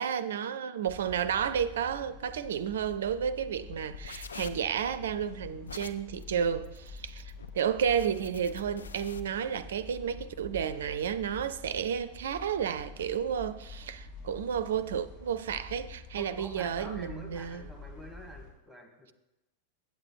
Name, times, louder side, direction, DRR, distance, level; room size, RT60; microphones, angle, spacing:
voice 1, 0.0-17.6, right 8 dB, 60° right, 0.4 m, -32 dB
sound 1, 0.8-18.5, left 3 dB, 50° left, 2.7 m, -47 dB
sound 2, 3.6-9.2, left 5 dB, 70° left, 0.4 m, -47 dB
voice 2, 16.2-19.1, equal, ahead, 1.9 m, -47 dB
8.4 x 7.7 x 4.6 m
figure-of-eight pair, 90°, 0 cm